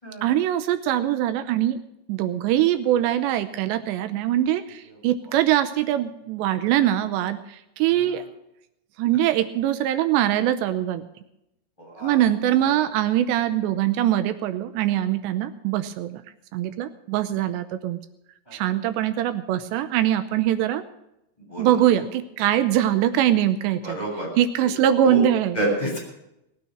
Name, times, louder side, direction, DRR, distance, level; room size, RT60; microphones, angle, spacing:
voice 1, 0.2-1.8 2.1-8.2 9.0-11.0 12.0-16.2 16.5-18.0 18.5-20.8 21.6-24.0 24.4-25.6, right 12 dB, 85° right, 11 dB, 3.0 m, -22 dB
voice 2, 11.8-12.2 18.5-18.6 21.5-22.0 23.8-24.3 25.0-25.2 25.5-26.0, right 1 dB, 10° left, -1 dB, 6.9 m, -29 dB
19.5 x 9.4 x 6.1 m, 0.84 s
omnidirectional pair, 5.0 m